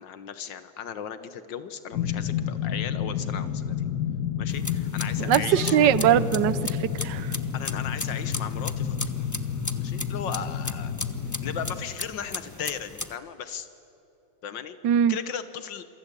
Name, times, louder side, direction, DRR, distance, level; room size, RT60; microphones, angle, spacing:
voice 1, 0.0-3.9 4.4-5.8 7.5-9.1 9.8-10.9 11.4-13.7 14.4-14.8 15.1-15.8, left 8 dB, 80° left, 12 dB, 1.7 m, -36 dB
sound 1, 1.9-11.8, left 8 dB, 60° left, 1.7 m, -30 dB
sound 2, 4.5-13.2, left 2 dB, 20° left, 0.4 m, -37 dB
voice 2, 5.2-7.4 14.8-15.2, right 10 dB, 75° right, 17 dB, 1.4 m, -22 dB
sound 3, 5.3-7.2, right 1 dB, 60° right, 3.1 m, -42 dB
28.0 x 24.0 x 8.3 m, 2.9 s
omnidirectional pair, 2.0 m